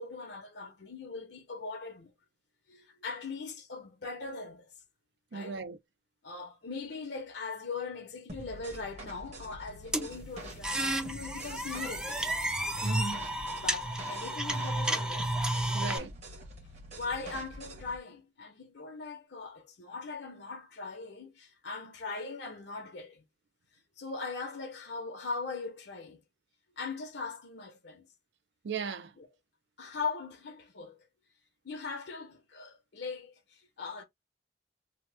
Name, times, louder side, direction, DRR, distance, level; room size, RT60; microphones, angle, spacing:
voice 1, 0.0-2.1 2.7-4.7 5.3-5.6 6.2-12.4 13.6-15.4 15.8-16.1 16.9-23.2 24.0-26.2 26.8-28.1 29.2-29.3 29.8-31.1 31.6-34.0, left 4 dB, 70° left, 0.7 m, -40 dB
voice 2, 5.3-5.8 12.8-13.2 15.7-16.1 28.6-29.1, right 5 dB, 75° right, 0.5 m, -37 dB
sound 1, 8.3-18.0, right 1 dB, 40° right, 1.0 m, -46 dB
sound 2, 9.9-16.0, right 1 dB, 5° right, 0.4 m, -32 dB
2.9 x 2.1 x 3.2 m
head